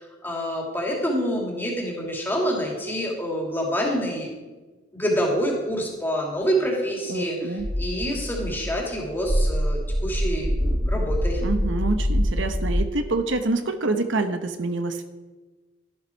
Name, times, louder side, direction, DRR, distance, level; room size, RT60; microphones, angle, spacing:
voice 1, 0.0-4.3 4.9-7.4 7.8-11.4, equal, 10° left, -1 dB, 2.6 m, -27 dB
voice 2, 7.1-7.7 11.4-15.0, right 2 dB, 70° right, 8 dB, 1.0 m, -26 dB
sound 1, 7.6-12.8, equal, 85° left, 4.1 m, -25 dB
12.5 x 11.5 x 4.5 m, 1.2 s
head